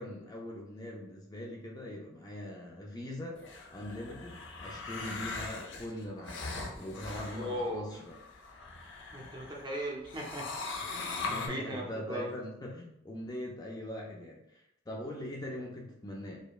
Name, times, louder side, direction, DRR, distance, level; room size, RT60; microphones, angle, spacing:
voice 1, 0.0-8.2 11.1-16.4, left 1 dB, 20° left, -1 dB, 0.4 m, -42 dB
sound 1, 3.3-9.7 10.0-11.5, left 3 dB, 70° left, 0.6 m, -41 dB
voice 2, 7.3-8.0 9.1-10.5 10.8-12.2, equal, 25° right, -1 dB, 0.6 m, -38 dB
5.0 x 2.2 x 2.3 m, 0.80 s
head